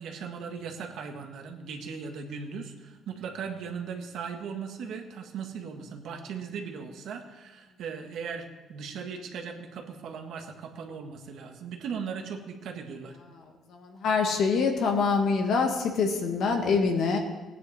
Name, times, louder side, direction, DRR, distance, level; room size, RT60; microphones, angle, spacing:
voice 1, 0.0-13.2, right 6 dB, 60° right, 3 dB, 1.5 m, -38 dB
voice 2, 13.7-17.2, left 4 dB, 55° left, 3 dB, 1.8 m, -25 dB
17.5 x 9.4 x 4.2 m, 1.2 s
cardioid pair, 170°, 0 cm